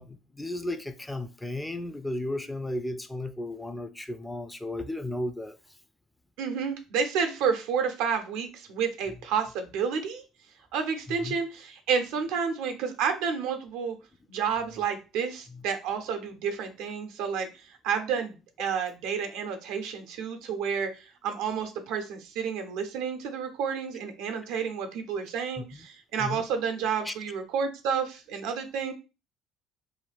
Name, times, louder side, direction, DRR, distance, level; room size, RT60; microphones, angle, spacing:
voice 1, 0.0-5.6 11.2-11.4 25.6-25.8 26.2-26.4 27.0-27.1, left 1 dB, 10° left, 0.4 m, -34 dB
voice 2, 6.4-10.2 10.7-14.0 14.3-28.9, right 6 dB, 80° right, 0.6 m, -30 dB
2.5 x 2.3 x 3.3 m
supercardioid pair, 70°, 0 cm